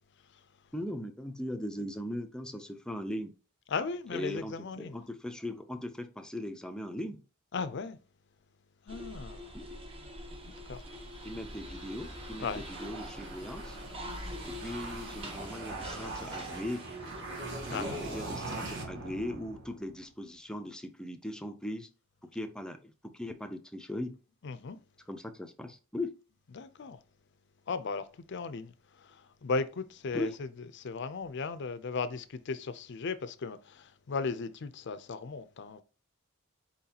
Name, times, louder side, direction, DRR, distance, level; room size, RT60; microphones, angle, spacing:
voice 1, 0.7-3.3 4.1-7.2 9.5-9.7 11.2-13.8 14.4-16.9 17.7-21.9 22.2-24.2 25.1-26.1 30.1-30.4, left 1 dB, 5° left, 0.5 m, -39 dB
voice 2, 3.7-5.0 7.5-8.0 8.8-9.6 10.7-10.8 12.4-12.6 17.7-18.1 24.4-24.8 26.5-27.0 27.7-35.8, left 4 dB, 60° left, 0.5 m, -36 dB
sound 1, 8.9-18.2, equal, 30° right, 0.9 m, -44 dB
sound 2, 10.7-20.1, right 2 dB, 60° right, 1.5 m, -43 dB
4.4 x 3.9 x 2.8 m
head